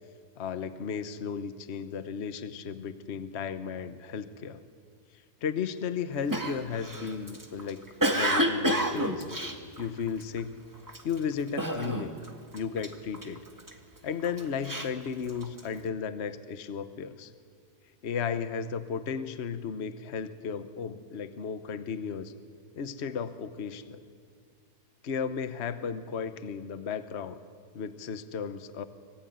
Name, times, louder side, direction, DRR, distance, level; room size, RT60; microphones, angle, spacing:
voice 1, 0.4-4.6 5.4-7.8 8.1-9.3 9.8-10.6 11.0-12.1 12.5-13.4 14.0-17.3 18.0-22.3 22.8-24.0 25.0-27.4 27.7-28.9, left 6 dB, 45° left, 10 dB, 1.1 m, -34 dB
Cough, 6.3-10.4 10.9-11.2 11.6-12.3 12.5-13.7 14.2-15.7, right 1 dB, 10° right, 1.6 m, -29 dB
25.0 x 21.5 x 9.3 m, 2.1 s
omnidirectional pair, 1.7 m